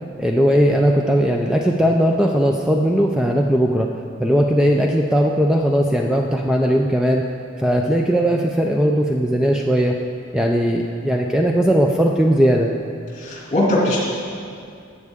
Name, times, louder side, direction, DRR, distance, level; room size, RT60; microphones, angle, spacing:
voice 1, 0.2-3.9 4.2-7.2 7.6-9.9 10.3-12.7, equal, 5° right, 0 dB, 0.4 m, -18 dB
voice 2, 13.2-14.1, left 1 dB, 40° left, -4 dB, 2.4 m, -20 dB
14.5 x 8.4 x 3.6 m, 2.4 s
head